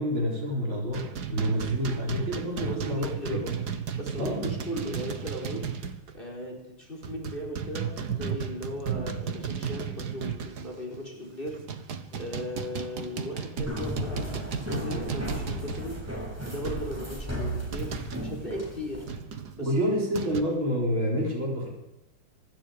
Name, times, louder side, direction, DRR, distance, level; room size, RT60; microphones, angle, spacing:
voice 1, 0.0-3.4 4.2-4.5 19.6-21.7, equal, 70° right, -2 dB, 5.5 m, -28 dB
sound 1, 0.9-6.2 6.4-6.6 7.0-11.0 11.5-18.3 19.1-20.4, right 7 dB, 50° right, 1.9 m, -35 dB
voice 2, 2.6-3.6 3.9-5.7 6.1-16.0 16.5-19.1 19.5-19.7 20.2-20.5, equal, 25° left, 1 dB, 4.6 m, -37 dB
sound 2, 13.6-19.0, equal, 5° right, 7.7 m, -35 dB
25.0 x 20.0 x 5.2 m, 0.89 s
omnidirectional pair, 2.3 m